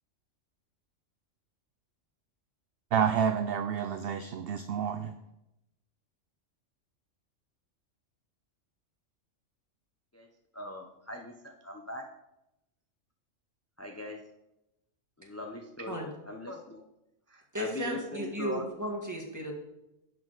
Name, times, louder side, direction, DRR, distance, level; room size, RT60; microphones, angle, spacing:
voice 1, 2.9-5.1, right 7 dB, 60° right, 8 dB, 0.6 m, -29 dB
voice 2, 10.5-12.1 13.8-14.2 15.2-16.8 17.3-18.7, left 2 dB, 15° left, 2 dB, 0.5 m, -40 dB
voice 3, 17.5-19.5, equal, 15° right, 0 dB, 1.7 m, -35 dB
10.5 x 7.2 x 4.0 m, 0.90 s
omnidirectional pair, 1.3 m